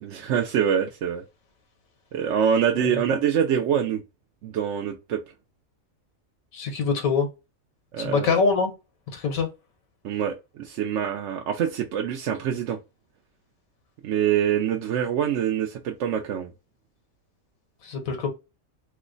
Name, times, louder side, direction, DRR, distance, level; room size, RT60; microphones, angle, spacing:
voice 1, 0.0-1.2 2.1-4.0 4.4-5.2 7.9-8.4 10.0-12.8 14.0-16.5, right 8 dB, 70° right, 0.8 m, -25 dB
voice 2, 6.5-7.3 8.0-8.7 9.1-9.5 17.8-18.3, left 4 dB, 85° left, 1.4 m, -24 dB
3.0 x 2.1 x 3.7 m
omnidirectional pair, 1.4 m